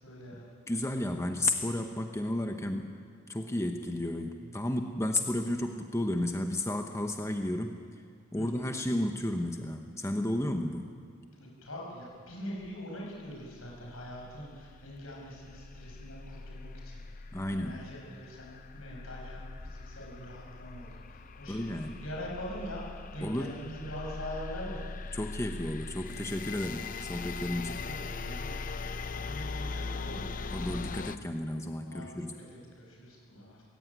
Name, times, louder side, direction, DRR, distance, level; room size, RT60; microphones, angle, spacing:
voice 1, 0.0-0.4 8.3-8.7 11.4-24.8 27.6-30.3 31.8-33.6, equal, 80° left, -2 dB, 7.9 m, -43 dB
voice 2, 0.7-2.9 3.3-7.8 8.3-10.9 17.3-17.8 21.5-22.0 23.2-23.5 25.1-27.8 30.5-32.3, left 1 dB, 15° left, 4 dB, 1.0 m, -32 dB
sound 1, 13.5-31.2, left 4 dB, 40° left, 0.6 m, -41 dB
20.5 x 17.5 x 9.2 m, 2.1 s
head